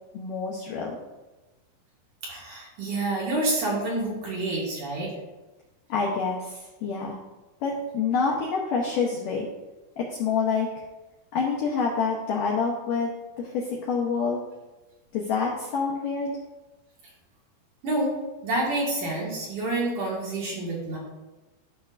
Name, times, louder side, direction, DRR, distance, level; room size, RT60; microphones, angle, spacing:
voice 1, 0.1-1.0 5.9-7.2 7.6-9.5 10.0-10.7 11.3-13.1 13.4-14.4 15.1-16.3, left 5 dB, 75° left, -2 dB, 1.9 m, -27 dB
voice 2, 2.2-5.1 17.8-18.2 18.4-21.0, right 2 dB, 55° right, -5 dB, 2.9 m, -28 dB
13.5 x 6.1 x 2.5 m, 1.1 s
omnidirectional pair, 4.9 m